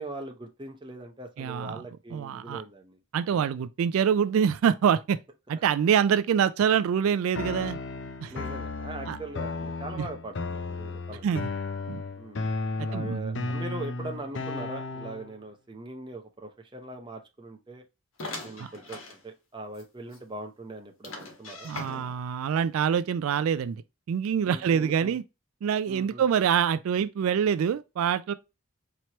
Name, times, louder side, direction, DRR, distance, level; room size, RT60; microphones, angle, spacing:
voice 1, 0.0-3.0 8.3-11.4 12.2-12.5 12.8-17.8 18.4-21.7 24.4-25.2 25.9-26.2, right 2 dB, 20° right, 0.7 m, -41 dB
voice 2, 1.4-1.8 2.1-2.6 3.1-5.2 5.5-7.8 8.2-8.3 9.1-9.2 10.0-10.1 11.2-11.5 11.9-12.0 12.8-13.5 18.6-18.7 21.6-23.8 24.1-25.2 25.6-28.3, right 8 dB, 80° right, 0.3 m, -25 dB
sound 1, 7.3-15.3, left 3 dB, 55° left, 0.5 m, -34 dB
sound 2, 18.2-19.2 19.7-19.8 20.1-20.2 21.0-22.3, left 2 dB, 75° left, 1.4 m, -40 dB
4.4 x 3.0 x 2.9 m
head